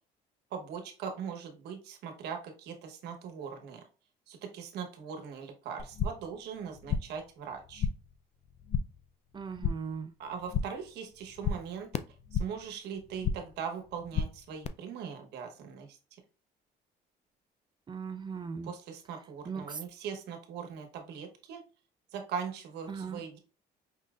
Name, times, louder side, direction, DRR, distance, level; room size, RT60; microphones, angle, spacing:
voice 1, 0.5-3.8 4.3-7.9 10.2-11.9 12.3-16.0 18.6-21.6 22.1-23.4, right 7 dB, 80° right, 4 dB, 1.1 m, -40 dB
sound 1, 5.8-6.4 6.6-7.3 7.5-8.2 8.4-9.0 9.3-10.0 10.3-10.9 11.2-12.7 13.0-13.6 13.9-14.7, left 6 dB, 40° left, 0.4 m, -34 dB
voice 2, 9.3-10.1 17.9-18.7 19.5-19.8 22.9-23.2, right 5 dB, 25° right, 9 dB, 0.4 m, -38 dB
5.4 x 3.2 x 2.4 m, 0.35 s
cardioid pair, 110°, 17 cm